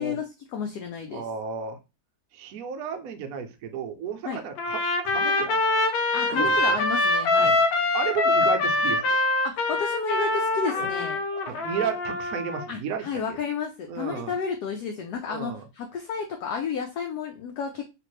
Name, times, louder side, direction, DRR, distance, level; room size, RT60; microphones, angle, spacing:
voice 1, 0.0-1.2 4.2-4.4 6.1-7.5 9.4-11.2 12.7-17.8, left 6 dB, 70° left, 3 dB, 1.0 m, -32 dB
voice 2, 1.1-1.8 2.3-4.8 5.0-5.6 6.3-6.8 7.4-7.6 7.9-9.0 10.7-10.9 11.5-13.4 13.9-14.3 15.3-15.6, right 7 dB, 70° right, 5 dB, 1.0 m, -33 dB
Trumpet, 4.6-12.7, left 2 dB, 90° left, 1.4 m, -24 dB
3.3 x 2.8 x 3.1 m, 0.27 s
omnidirectional pair, 2.0 m